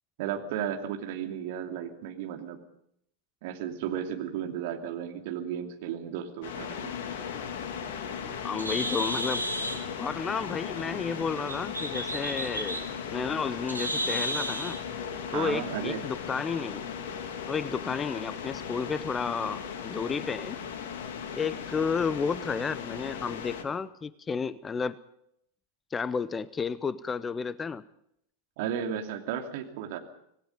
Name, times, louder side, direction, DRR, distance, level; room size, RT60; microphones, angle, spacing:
voice 1, 0.2-2.6 3.4-6.9 15.3-16.0 28.6-30.0, right 9 dB, 50° right, 4 dB, 2.8 m, -34 dB
sound 1, 6.4-23.6, left 7 dB, 50° left, 2.6 m, -37 dB
Bird, 7.5-14.8, right 1 dB, 85° right, 2.5 m, -34 dB
voice 2, 8.4-9.5 10.0-12.8 13.1-14.8 15.3-16.8 17.5-20.6 21.3-25.0 25.9-27.8, left 5 dB, 15° left, 19 dB, 0.7 m, -32 dB
26.0 x 18.5 x 5.4 m, 0.73 s
figure-of-eight pair, 90°, 0 cm